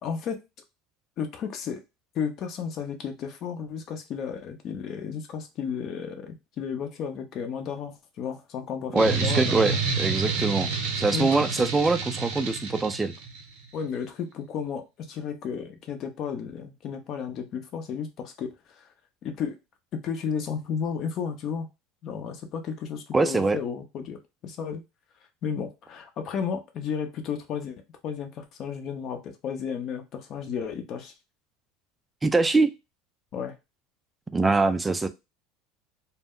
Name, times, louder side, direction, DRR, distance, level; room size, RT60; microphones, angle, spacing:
voice 1, 0.0-0.4 1.2-1.8 2.1-9.8 11.1-11.5 13.7-18.9 19.2-19.6 19.9-21.7 22.0-24.8 25.4-31.1 33.3-33.6, left 7 dB, 50° left, 6 dB, 0.6 m, -33 dB
voice 2, 8.9-10.7 10.9-13.1 23.1-23.6 32.2-32.7 34.3-35.1, right 3 dB, 15° right, 10 dB, 0.3 m, -23 dB
sound 1, 9.0-13.4, right 5 dB, 70° right, 0.6 m, -29 dB
2.1 x 2.1 x 3.6 m, 0.24 s
supercardioid pair, 110°, 0 cm